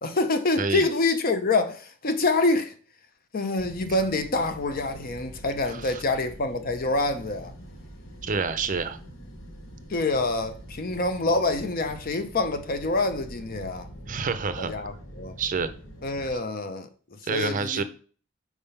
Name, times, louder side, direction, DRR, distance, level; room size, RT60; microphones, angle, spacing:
voice 1, 0.0-2.7 3.3-7.5 9.9-13.9 14.6-15.4 16.0-16.9 17.3-17.8, left 2 dB, 50° left, 0.7 m, -26 dB
sound 1, 3.6-16.3, equal, 85° left, 1.3 m, -44 dB
voice 2, 5.7-6.0 8.2-9.0 14.1-14.7 15.4-15.7 17.2-17.8, right 4 dB, 40° right, 0.5 m, -28 dB
4.7 x 3.6 x 5.5 m
head